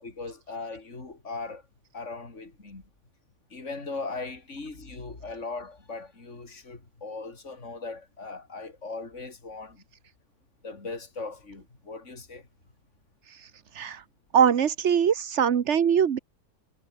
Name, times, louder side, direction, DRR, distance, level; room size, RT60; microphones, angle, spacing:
voice 1, 0.0-1.6 1.9-2.8 3.5-9.8 10.6-12.5, left 3 dB, 55° left, 4.0 m, -39 dB
voice 2, 14.3-16.2, right 8 dB, 55° right, 1.2 m, -22 dB
omnidirectional pair, 1.5 m